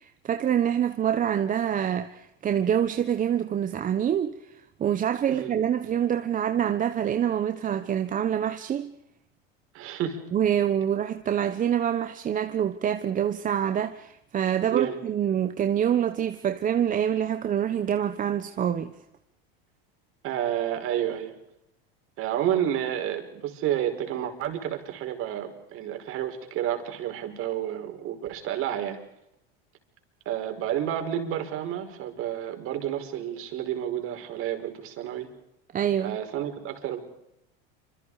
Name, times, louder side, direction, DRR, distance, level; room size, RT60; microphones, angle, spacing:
voice 1, 0.0-8.9 10.3-18.9 35.7-36.2, right 9 dB, 25° right, 1.2 m, -26 dB
voice 2, 9.7-10.2 14.7-15.0 20.2-21.3 22.2-29.0 30.3-35.3 36.0-37.0, right 10 dB, 45° right, 5.2 m, -30 dB
27.5 x 26.0 x 5.0 m
supercardioid pair, 130°, 30 cm